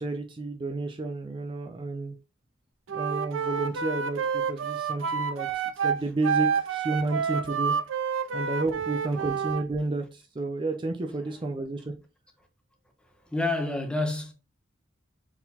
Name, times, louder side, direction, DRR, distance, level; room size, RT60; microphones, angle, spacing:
voice 1, 0.0-2.2 2.9-7.8 8.3-11.9, right 2 dB, 25° right, 0.4 m, -31 dB
Wind instrument woodwind instrument, 2.9-9.6, right 6 dB, 80° right, 0.5 m, -29 dB
voice 2, 13.2-14.3, left 2 dB, 5° left, 0.7 m, -28 dB
4.4 x 3.8 x 2.7 m
head